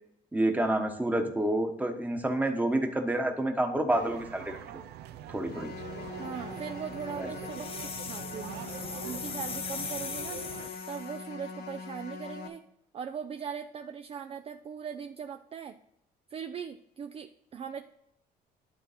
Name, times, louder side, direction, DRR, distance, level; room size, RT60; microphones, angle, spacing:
voice 1, 0.3-4.6 5.3-5.7 7.2-7.3, right 1 dB, 10° right, 5 dB, 1.1 m, -28 dB
sound 1, 3.9-10.7, right 10 dB, 80° right, 0.6 m, -44 dB
sound 2, 5.5-12.5, left 5 dB, 70° left, 1.1 m, -42 dB
voice 2, 6.2-8.7 9.0-10.4 10.9-12.6 12.9-15.8 16.3-17.9, right 7 dB, 35° right, 8 dB, 0.4 m, -40 dB
sound 3, 7.5-11.2, left 6 dB, 35° left, 0.7 m, -39 dB
11.5 x 3.9 x 4.2 m, 0.77 s
cardioid pair, 110°, 17 cm